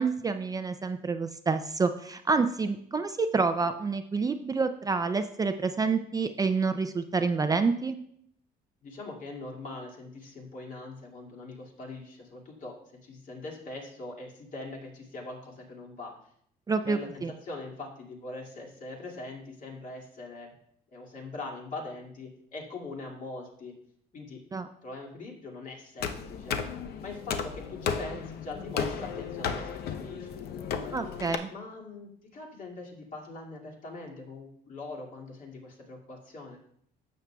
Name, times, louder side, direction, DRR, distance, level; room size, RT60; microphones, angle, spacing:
voice 1, 0.0-8.0 16.7-17.3 24.5-24.7 30.9-31.5, right 4 dB, 20° right, 8 dB, 0.4 m, -28 dB
voice 2, 8.8-12.8 13.0-16.2 16.8-20.5 20.9-23.7 24.1-24.4 24.8-26.6 27.0-30.9 31.5-36.6, left 2 dB, 50° left, -1 dB, 2.2 m, -42 dB
sound 1, 26.0-31.3, left 6 dB, 70° left, 0.7 m, -34 dB
12.0 x 7.3 x 2.3 m, 0.67 s
cardioid pair, 110°, 17 cm